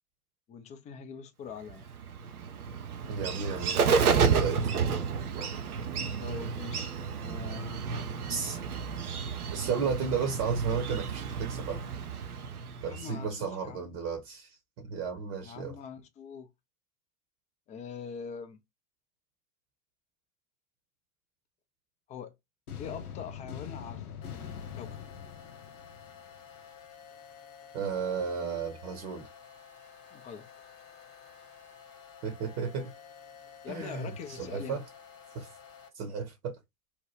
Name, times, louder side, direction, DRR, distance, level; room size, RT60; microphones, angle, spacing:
voice 1, 0.5-1.9 6.2-6.9 7.2-8.2 12.9-13.9 15.4-16.5 17.7-18.6 22.1-22.3 22.8-24.0 24.3-25.0 30.1-30.5 33.6-34.8, left 6 dB, 20° left, 0.4 m, -43 dB
Bird, 1.7-13.2, right 6 dB, 85° right, 0.6 m, -31 dB
voice 2, 3.1-4.6 8.3-8.6 9.5-11.8 12.8-15.8 27.7-29.3 32.2-32.9 33.7-34.8 35.3-35.5 35.9-36.6, right 6 dB, 50° right, 0.9 m, -34 dB
sound 1, 22.7-26.6, left 8 dB, 90° left, 0.6 m, -43 dB
sound 2, 24.2-35.9, left 7 dB, 35° left, 1.0 m, -52 dB
2.8 x 2.1 x 3.2 m
figure-of-eight pair, 85°, 43 cm